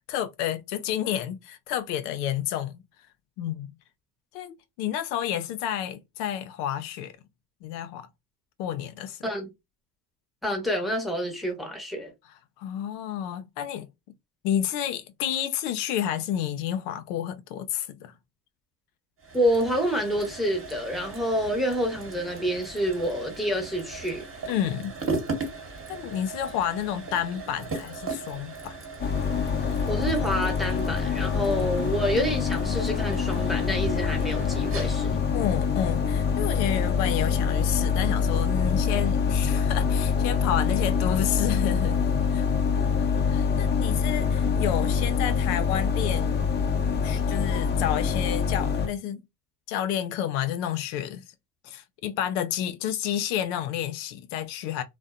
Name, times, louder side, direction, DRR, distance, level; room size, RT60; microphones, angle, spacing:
voice 1, 0.1-2.8 3.4-3.7 4.3-7.1 7.6-8.1 8.6-9.2 12.6-13.9 14.4-18.1 24.5-24.9 25.9-28.8 35.3-42.5 43.3-46.4 47.0-49.2 49.7-51.3 51.6-54.8, left 10 dB, 80° left, 0.6 m, -30 dB
voice 2, 10.4-12.1 19.3-24.2 29.9-35.2, equal, ahead, 0.9 m, -28 dB
sound 1, 19.2-36.9, right 3 dB, 25° right, 1.1 m, -38 dB
sound 2, 29.0-48.9, left 6 dB, 25° left, 0.6 m, -25 dB
2.5 x 2.1 x 2.4 m
supercardioid pair, 85°, 46 cm